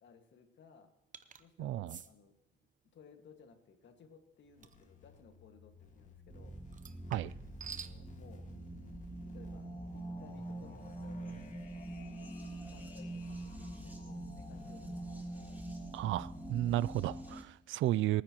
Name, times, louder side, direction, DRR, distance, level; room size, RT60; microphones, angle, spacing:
voice 1, 0.0-0.9 1.4-2.4 2.9-6.6 7.6-8.5 9.3-11.4 12.6-15.1, left 6 dB, 65° left, 1.8 m, -59 dB
sound 1, 1.1-1.4 1.9-2.1 4.6-4.8 6.7-8.0, right 6 dB, 40° right, 0.8 m, -48 dB
voice 2, 1.6-2.0 7.1-7.3 15.9-18.2, right 14 dB, 75° right, 0.4 m, -33 dB
sound 2, 4.4-17.4, left 3 dB, 40° left, 1.9 m, -54 dB
sound 3, 6.3-17.4, right 2 dB, 10° right, 2.9 m, -45 dB
23.5 x 10.0 x 3.0 m
cardioid pair, 90°, 20 cm